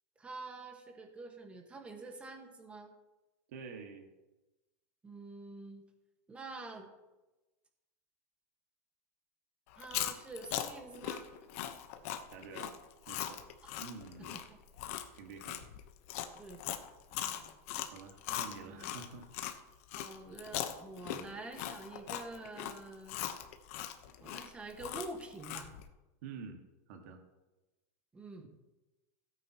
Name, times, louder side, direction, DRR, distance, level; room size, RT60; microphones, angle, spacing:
voice 1, 0.2-2.9 5.0-5.8 6.3-6.9 9.7-11.3 14.3-14.6 16.3-16.6 17.1-17.6 18.3-18.9 19.9-23.2 24.2-25.7 28.1-28.5, right 2 dB, 15° right, 4 dB, 1.6 m, -47 dB
voice 2, 3.5-4.1 12.3-12.8 13.1-13.4 13.8-14.4 15.1-15.7 17.9-19.3 21.0-21.3 26.2-26.6 26.9-27.2, right 5 dB, 70° right, 3 dB, 1.9 m, -48 dB
Chewing mastication, 9.7-19.6 19.9-25.8, left 12 dB, 65° left, 1.1 m, -40 dB
16.0 x 8.9 x 3.0 m, 1.1 s
supercardioid pair, 145°, 8 cm